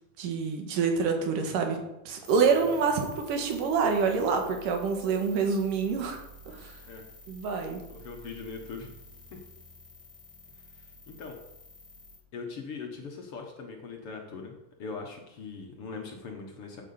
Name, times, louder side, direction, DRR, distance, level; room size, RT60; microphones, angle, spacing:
voice 1, 0.2-6.2 6.5-6.8 7.3-7.8, right 5 dB, 90° right, 4 dB, 3.1 m, -27 dB
sound 1, 2.2-12.2, left 1 dB, 10° right, 1.9 m, -51 dB
voice 2, 7.9-9.0 9.3-9.4 10.5-11.4 12.3-16.8, left 4 dB, 55° left, 2 dB, 1.9 m, -41 dB
8.6 x 8.1 x 7.0 m, 0.92 s
omnidirectional pair, 3.7 m